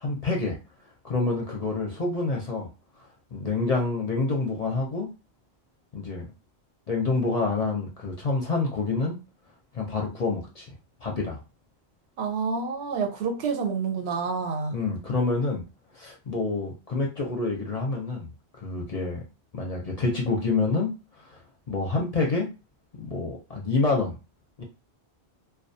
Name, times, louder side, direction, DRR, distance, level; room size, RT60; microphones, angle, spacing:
voice 1, 0.0-0.6 1.0-2.7 3.3-5.1 5.9-6.3 6.9-9.2 9.7-10.7 11.0-11.4 14.7-15.6 15.9-18.3 18.6-19.2 19.5-20.9 21.3-21.4 21.7-22.5 23.0-24.1 24.6-24.7, left 3 dB, 45° left, 0.6 m, -27 dB
voice 2, 12.2-14.8, right 5 dB, 75° right, 0.8 m, -28 dB
2.3 x 2.2 x 2.6 m
omnidirectional pair, 1.1 m